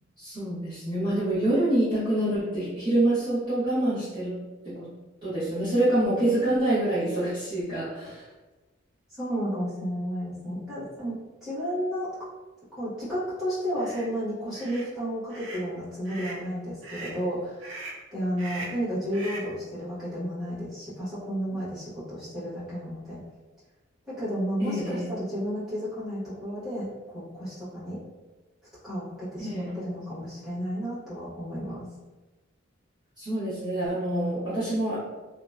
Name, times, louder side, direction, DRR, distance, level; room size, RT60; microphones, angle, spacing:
voice 1, 0.2-4.4 4.6-4.9 5.2-8.2 24.6-25.1 29.4-29.7 33.2-35.0, right 1 dB, 20° right, -14 dB, 0.9 m, -26 dB
voice 2, 9.2-12.1 12.8-17.8 18.1-23.2 24.1-28.0 28.8-31.8, equal, ahead, -13 dB, 1.1 m, -32 dB
sound 1, 13.8-14.1 14.5-14.9 15.3-15.7 16.0-16.4 16.8-17.2 17.6-18.0 18.4-18.8 19.1-19.5, right 2 dB, 85° right, 0.5 m, -40 dB
2.7 x 2.0 x 2.3 m, 1.2 s
head